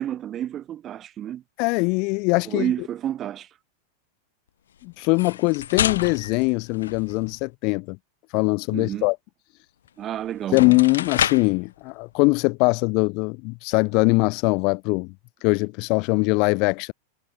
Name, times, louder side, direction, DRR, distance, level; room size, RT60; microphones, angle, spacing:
voice 1, 0.0-1.4 2.5-3.5 8.7-9.1 10.0-10.6, right 11 dB, 30° right, 3.7 m, -30 dB
voice 2, 1.6-2.7 4.8-8.0 8.3-9.2 10.5-15.1 15.4-16.9, left 30 dB, 45° left, 3.2 m, -22 dB
sound 1, 5.0-7.4 9.9-10.0 10.4-11.6, left 9 dB, 65° left, 6.5 m, -29 dB
figure-of-eight pair, 90°, 0 cm